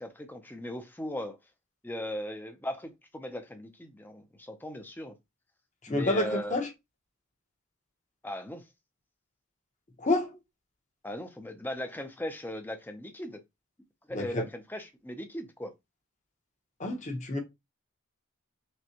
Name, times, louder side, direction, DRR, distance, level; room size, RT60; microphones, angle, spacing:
voice 1, 0.0-1.4 1.8-5.1 5.9-6.6 8.2-8.7 11.0-13.4 14.1-15.7, left 1 dB, 10° left, 0.5 m, -38 dB
voice 2, 5.9-6.7 10.0-10.3 14.1-14.4 16.8-17.4, left 2 dB, 35° left, 0.9 m, -28 dB
6.0 x 2.2 x 2.9 m
head